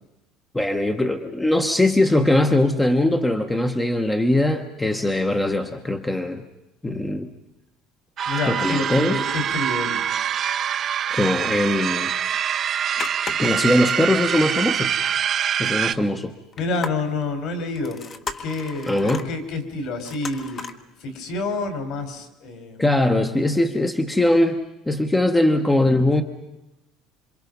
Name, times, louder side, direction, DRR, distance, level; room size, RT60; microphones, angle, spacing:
voice 1, 0.5-6.4 6.8-7.3 8.4-9.2 11.1-12.1 13.4-14.9 15.6-16.3 18.9-19.3 22.8-26.2, left 1 dB, 5° left, 6 dB, 1.0 m, -21 dB
sound 1, 8.2-15.9, right 8 dB, 30° right, 0.8 m, -24 dB
voice 2, 8.3-10.0 16.6-18.0 18.4-20.6 21.0-22.9, left 3 dB, 50° left, 7 dB, 4.3 m, -28 dB
sound 2, 13.0-13.8 14.1-14.2 14.6-14.7 16.5-17.3 17.8-19.3 20.0-20.8 21.3-21.4, left 4 dB, 25° left, 1.2 m, -35 dB
27.5 x 26.0 x 5.3 m, 0.93 s
cardioid pair, 170°, 0 cm